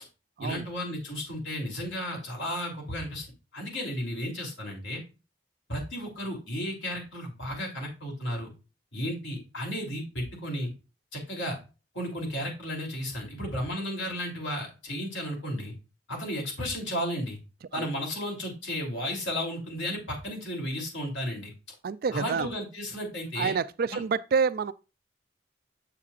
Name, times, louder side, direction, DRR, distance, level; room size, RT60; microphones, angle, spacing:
voice 1, 0.4-3.3 3.5-5.0 5.7-8.5 8.9-10.7 11.1-11.6 11.9-15.7 16.1-17.4 17.7-21.5 22.1-23.5 23.9-24.0, equal, 70° left, 3.1 m, -33 dB
voice 2, 21.8-22.5 23.4-24.7, right 5 dB, 50° right, 0.3 m, -28 dB
7.5 x 7.0 x 2.4 m
head